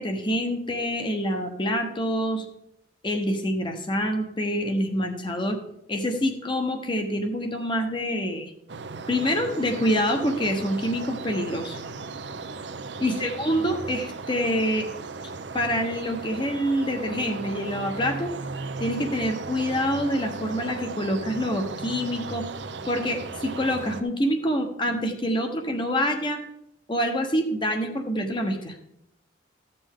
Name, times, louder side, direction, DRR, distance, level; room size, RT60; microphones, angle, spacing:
voice 1, 0.0-2.5 3.0-5.6 5.9-8.5 9.1-11.8 13.0-14.9 15.5-18.3 18.8-22.4 22.8-26.4 26.9-28.8, equal, 25° left, 4 dB, 1.1 m, -26 dB
sound 1, 8.7-24.0, right 3 dB, 70° right, 0.7 m, -36 dB
14.0 x 7.0 x 3.7 m, 0.79 s
head